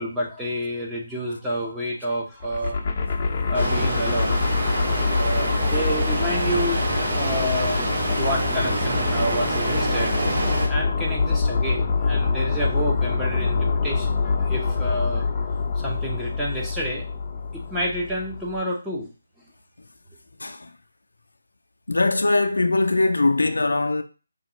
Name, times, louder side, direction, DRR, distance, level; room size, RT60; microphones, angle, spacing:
voice 1, 0.0-2.8 3.5-4.3 4.6-6.9 7.1-7.9 8.2-10.2 10.7-17.1 17.5-19.1, equal, 5° right, 0.9 m, -29 dB
sound 1, 2.4-18.6, left 4 dB, 35° left, 0.6 m, -25 dB
sound 2, 3.5-10.7, right 2 dB, 55° right, 1.6 m, -27 dB
voice 2, 20.4-20.7 21.9-24.0, left 2 dB, 85° left, 0.6 m, -21 dB
5.1 x 2.4 x 3.0 m
figure-of-eight pair, 155°, 0 cm